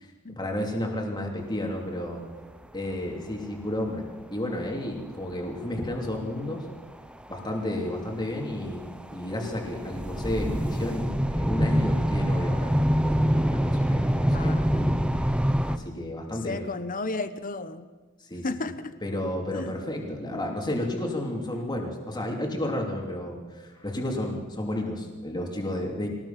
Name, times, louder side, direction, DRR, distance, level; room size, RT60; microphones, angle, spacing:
voice 1, 0.0-2.2 2.7-6.7 7.3-12.7 13.0-15.0 15.6-16.7 18.2-18.7 19.0-26.1, left 1 dB, 20° left, 0 dB, 3.1 m, -32 dB
sound 1, 2.4-2.5 2.8-3.4 3.9-4.0 4.6-4.7 5.5-5.9 6.6-6.7 7.0-15.8, equal, 5° right, 0.7 m, -25 dB
voice 2, 14.3-15.2 16.4-17.9 18.4-18.9 19.5-19.7, left 3 dB, 40° left, 12 dB, 1.0 m, -34 dB
23.0 x 19.0 x 6.0 m, 1.3 s
head